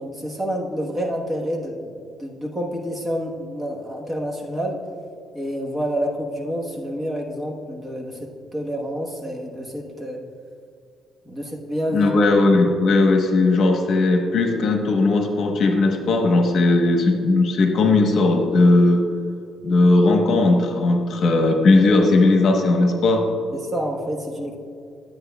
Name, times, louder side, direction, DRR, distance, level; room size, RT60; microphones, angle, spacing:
voice 1, 0.0-1.9 2.2-4.8 5.3-8.2 8.5-10.2 11.2-12.1 23.5-24.6, equal, 20° right, -1 dB, 1.2 m, -28 dB
voice 2, 11.9-19.0 19.6-23.3, left 2 dB, 55° left, 3 dB, 1.0 m, -17 dB
12.5 x 8.4 x 2.3 m, 2.3 s
cardioid pair, 115°, 0 cm